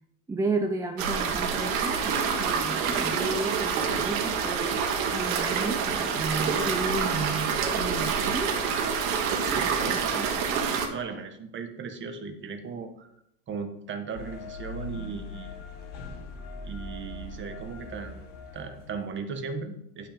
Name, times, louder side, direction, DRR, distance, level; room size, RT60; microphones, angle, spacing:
voice 1, 0.3-4.8 5.1-8.6 9.6-10.3, right 3 dB, 10° right, 5 dB, 0.5 m, -33 dB
sound 1, 1.0-10.9, right 6 dB, 80° right, 2.1 m, -27 dB
voice 2, 9.5-10.3 10.9-13.1 13.5-15.5 16.6-18.2 18.5-20.1, right 5 dB, 30° right, 7 dB, 1.5 m, -37 dB
sound 2, 14.1-19.1, left 2 dB, 85° left, 4.5 m, -41 dB
11.0 x 6.3 x 5.2 m, 0.76 s
supercardioid pair, 135°, 39 cm